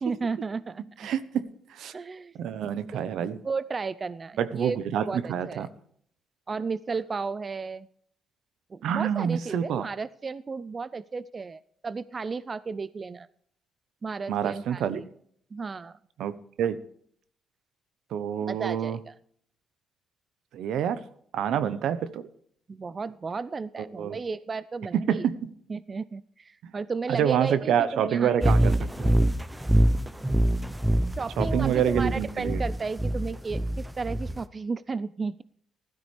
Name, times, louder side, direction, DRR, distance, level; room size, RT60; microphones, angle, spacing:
voice 1, 0.0-1.1 1.9-2.4 2.9-4.8 5.1-5.7 6.5-7.9 8.7-13.3 14.0-15.1 15.5-16.0 18.5-19.2 21.6-21.8 22.7-25.3 25.7-28.7 31.2-35.4, right 4 dB, 35° right, 17 dB, 0.4 m, -34 dB
voice 2, 1.0-1.4 1.7-1.9 2.3-3.4 4.4-5.7 8.8-9.9 14.3-15.0 16.2-16.3 16.6-16.8 18.1-19.0 20.5-21.0 21.3-22.2 24.0-24.2 25.1-25.5 26.6-26.7 27.1-28.7 29.0-29.1 31.4-32.6, right 9 dB, 75° right, 14 dB, 0.9 m, -27 dB
sound 1, 28.4-34.4, right 1 dB, 10° right, 0.8 m, -25 dB
15.5 x 13.0 x 3.4 m, 0.64 s
cardioid pair, 90°, 0 cm